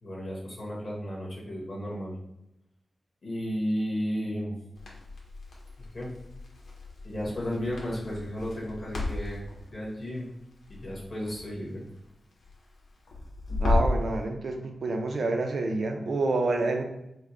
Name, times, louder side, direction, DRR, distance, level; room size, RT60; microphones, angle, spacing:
voice 1, 0.0-2.1 3.2-4.6 5.9-6.1 7.0-9.5 9.7-10.3 10.7-11.8, equal, 35° left, -5 dB, 1.6 m, -33 dB
Crackle, 4.7-14.1, left 2 dB, 85° left, 1.2 m, -34 dB
voice 2, 13.6-16.8, right 2 dB, 60° right, 3 dB, 0.6 m, -28 dB
4.9 x 2.2 x 4.4 m, 0.84 s
wide cardioid pair, 170°, 0 cm